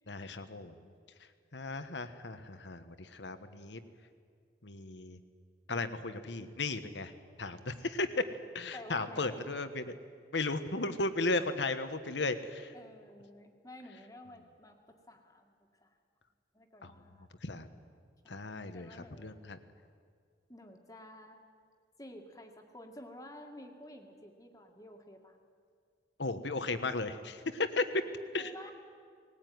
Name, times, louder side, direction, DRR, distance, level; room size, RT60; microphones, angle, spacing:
voice 1, 0.1-0.9 1.5-3.8 4.6-5.2 5.7-7.1 7.4-8.1 8.5-10.0 10.3-12.7 16.8-16.9 17.4-17.7 18.3-19.6 26.2-28.0 28.3-28.5, left 3 dB, 75° left, 10 dB, 1.3 m, -35 dB
voice 2, 8.7-9.4 12.7-15.5 15.8-16.0 16.5-17.3 18.2-19.3 20.5-21.4 22.0-25.4 28.4-28.7, left 1 dB, 20° left, 3 dB, 2.0 m, -51 dB
19.5 x 19.0 x 9.5 m, 2.1 s
head